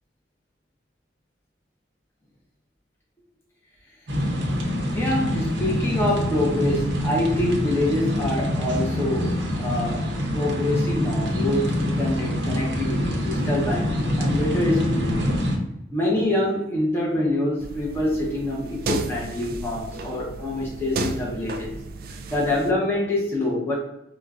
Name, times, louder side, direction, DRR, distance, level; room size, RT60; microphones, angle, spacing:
sound 1, 4.1-15.6, equal, 80° right, 0.8 m, -25 dB
voice 1, 4.9-15.3 15.9-21.7 22.1-23.7, left 1 dB, 10° left, -4 dB, 0.7 m, -26 dB
sound 2, 17.6-22.7, right 3 dB, 50° right, 0.3 m, -33 dB
4.9 x 2.2 x 2.4 m, 0.82 s
head